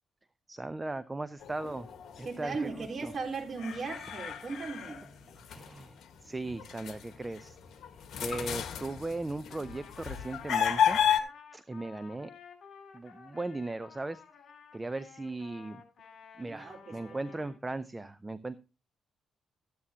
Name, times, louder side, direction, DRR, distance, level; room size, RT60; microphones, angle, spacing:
voice 1, 0.5-3.1 5.5-11.0 11.5-12.3 12.9-14.2 14.7-15.8 16.4-18.6, right 2 dB, 20° right, 14 dB, 0.5 m, -38 dB
sound 1, 1.4-2.7 3.2-6.0 6.5-11.2, left 9 dB, 75° left, 1.5 m, -32 dB
voice 2, 2.2-5.0 16.4-17.2, right 4 dB, 40° right, 1 dB, 3.1 m, -37 dB
Trumpet, 9.5-17.6, left 6 dB, 55° left, 4.2 m, -53 dB
14.0 x 9.7 x 2.8 m, 0.32 s
cardioid pair, 95°, 0 cm